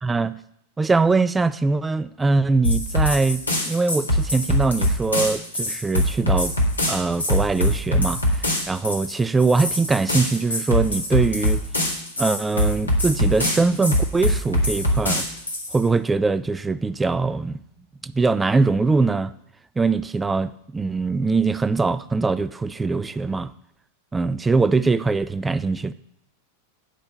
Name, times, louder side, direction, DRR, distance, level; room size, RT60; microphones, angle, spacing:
voice 1, 0.0-0.4 0.8-6.5 6.9-11.7 12.2-15.3 15.7-17.6 18.0-19.3 19.8-23.5 24.1-25.9, right 3 dB, 10° right, 0.4 m, -22 dB
sound 1, 2.6-15.8, left 1 dB, 80° left, 1.9 m, -23 dB
8.8 x 5.0 x 6.8 m
figure-of-eight pair, 90°, 0 cm